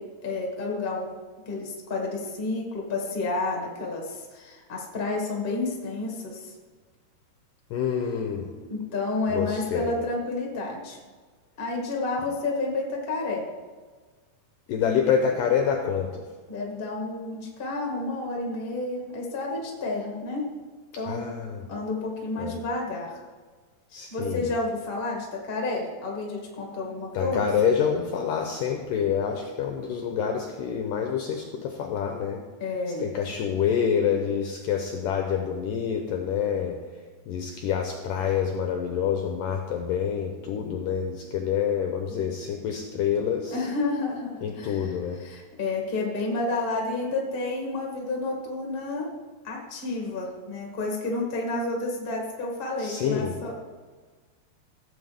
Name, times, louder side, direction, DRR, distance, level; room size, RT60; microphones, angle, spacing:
voice 1, 0.2-1.1 1.4-6.5 8.6-11.0 11.6-13.4 16.5-20.4 20.9-21.3 21.7-23.2 24.1-27.5 32.6-33.1 43.5-49.1 49.4-53.6, left 3 dB, 30° left, -1 dB, 1.0 m, -30 dB
voice 2, 7.7-8.5 9.3-9.9 14.7-16.2 21.1-21.6 22.4-22.6 23.9-24.5 27.1-32.4 33.0-36.8 37.3-43.6 44.4-45.2 52.8-53.4, left 7 dB, 80° left, 3 dB, 2.0 m, -27 dB
16.5 x 7.9 x 3.5 m, 1.5 s
omnidirectional pair, 4.7 m